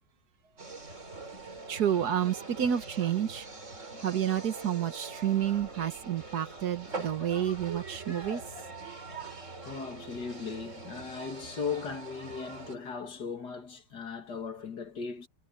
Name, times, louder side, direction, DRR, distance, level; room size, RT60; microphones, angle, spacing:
sound 1, 0.6-12.8, right 3 dB, 45° right, 3.7 m, -43 dB
voice 1, 1.7-3.5 4.0-8.4, right 10 dB, 65° right, 1.6 m, -30 dB
voice 2, 9.6-15.3, left 5 dB, 65° left, 2.8 m, -38 dB
omnidirectional pair, 1.9 m